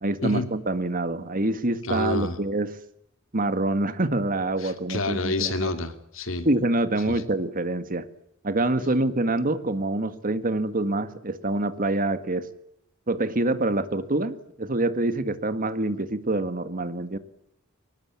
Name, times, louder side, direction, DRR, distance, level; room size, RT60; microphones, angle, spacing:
voice 1, 0.0-2.7 3.3-5.7 6.4-8.1 8.4-12.5 13.1-17.2, right 2 dB, 45° right, 12 dB, 1.8 m, -26 dB
voice 2, 1.8-2.4 4.6-6.5 7.1-7.2, left 2 dB, 70° left, 8 dB, 2.9 m, -28 dB
23.0 x 19.5 x 8.4 m, 0.73 s
head